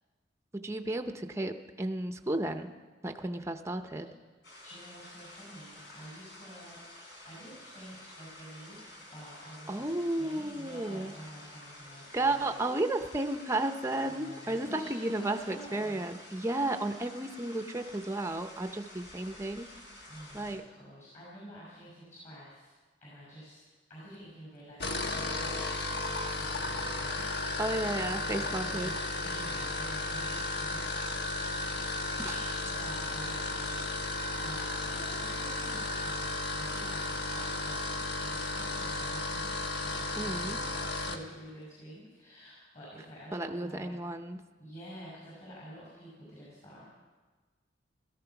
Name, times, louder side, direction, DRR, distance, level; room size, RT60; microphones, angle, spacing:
voice 1, 0.5-2.7 3.0-4.1 9.7-11.1 12.1-19.7 20.3-20.6 27.6-28.9 32.2-32.3 40.2-40.6 43.3-44.4, right 2 dB, 15° right, 6 dB, 0.6 m, -33 dB
lost maples waterfall, 4.4-20.5, left 1 dB, 80° left, 4.6 m, -51 dB
voice 2, 4.6-6.8 7.2-12.5 14.0-16.0 20.1-23.6 23.9-27.9 28.2-37.1 37.3-44.0 44.6-46.8, equal, 40° left, -5 dB, 6.3 m, -49 dB
sound 1, 24.7-41.2, left 2 dB, 65° left, 1.2 m, -34 dB
16.5 x 14.0 x 5.9 m, 1.3 s
head